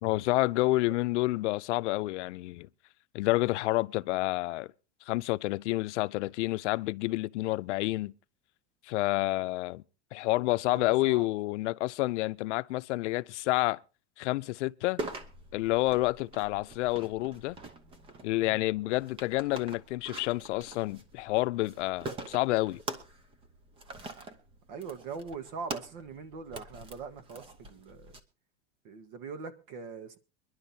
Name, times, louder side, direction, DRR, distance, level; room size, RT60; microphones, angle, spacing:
voice 1, 0.0-2.7 3.1-4.7 5.1-8.1 8.9-9.8 10.1-13.8 14.2-15.0 15.5-17.6 18.2-22.8, left 19 dB, 80° left, 0.6 m, -29 dB
voice 2, 10.7-11.3 18.4-18.7 24.7-28.2 28.8-30.2, right 5 dB, 50° right, 1.5 m, -42 dB
sound 1, 15.0-28.2, right 2 dB, 15° right, 0.7 m, -44 dB
23.5 x 11.0 x 2.8 m
supercardioid pair, 170°, 35 cm